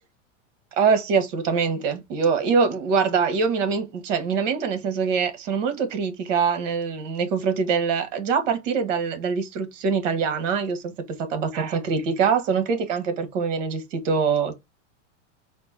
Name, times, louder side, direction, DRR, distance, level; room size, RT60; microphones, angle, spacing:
voice 1, 0.8-14.6, right 5 dB, 80° right, 1.6 m, -24 dB
4.4 x 2.7 x 4.3 m
supercardioid pair, 130°, 37 cm